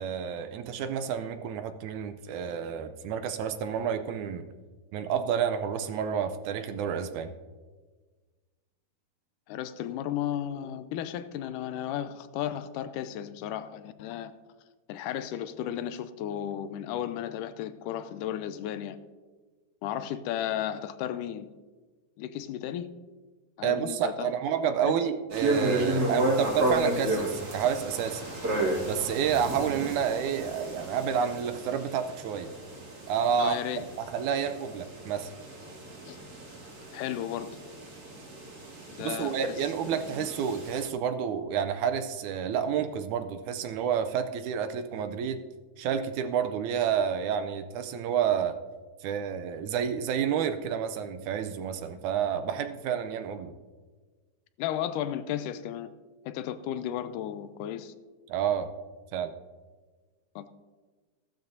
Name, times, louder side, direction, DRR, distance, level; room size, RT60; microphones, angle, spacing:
voice 1, 0.0-4.5 4.9-7.3 23.6-28.3 28.8-32.5 33.1-33.6 34.1-35.3 39.0-45.4 45.8-48.6 49.0-53.5 58.3-58.7 59.1-59.3, right 8 dB, 75° right, 9 dB, 1.9 m, -29 dB
voice 2, 9.5-14.3 14.9-19.0 19.8-21.5 22.2-22.9 23.6-24.3 24.8-25.0 33.4-33.9 36.0-36.2 36.9-37.5 38.9-39.7 40.1-40.3 54.6-55.9 56.3-57.9 60.4-60.5, left 11 dB, 85° left, 12 dB, 2.1 m, -34 dB
sound 1, 25.3-40.9, right 2 dB, 30° right, 2.3 m, -33 dB
15.5 x 13.0 x 2.7 m, 1.4 s
omnidirectional pair, 3.8 m